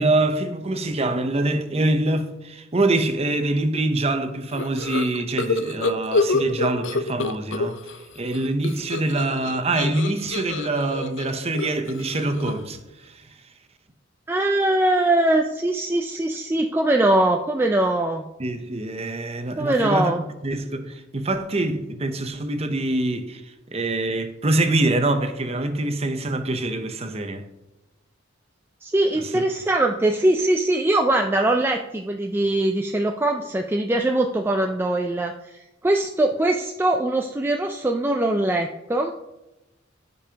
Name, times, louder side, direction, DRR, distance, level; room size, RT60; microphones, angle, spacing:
voice 1, 0.0-7.8 8.2-13.3 18.4-27.4 29.1-29.4, right 2 dB, 30° right, 0.7 m, -25 dB
sound 1, 4.5-8.0 8.3-12.8, left 3 dB, 65° left, 0.6 m, -27 dB
voice 2, 14.3-18.2 19.6-20.2 28.8-39.2, right 1 dB, 10° right, 0.3 m, -22 dB
15.0 x 5.4 x 2.8 m
head